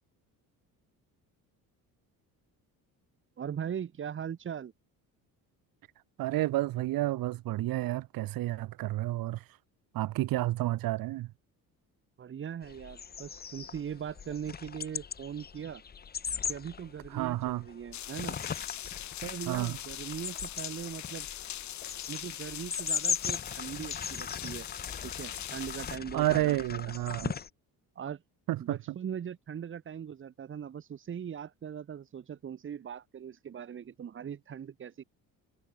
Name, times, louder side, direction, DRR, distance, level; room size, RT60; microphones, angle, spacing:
voice 1, 3.4-4.7 12.2-15.8 16.5-18.4 19.2-21.3 22.1-24.7 25.0-26.8 28.0-28.2 28.6-35.0, right 8 dB, 35° right, 5.4 m, -40 dB
voice 2, 6.2-9.4 9.9-11.3 17.1-17.6 19.5-19.8 26.1-27.3 28.5-28.8, right 16 dB, 75° right, 7.7 m, -30 dB
sound 1, 12.6-27.5, left 6 dB, 25° left, 3.6 m, -39 dB
sound 2, 17.9-26.0, left 12 dB, 55° left, 5.9 m, -41 dB
cardioid pair, 175°, 35 cm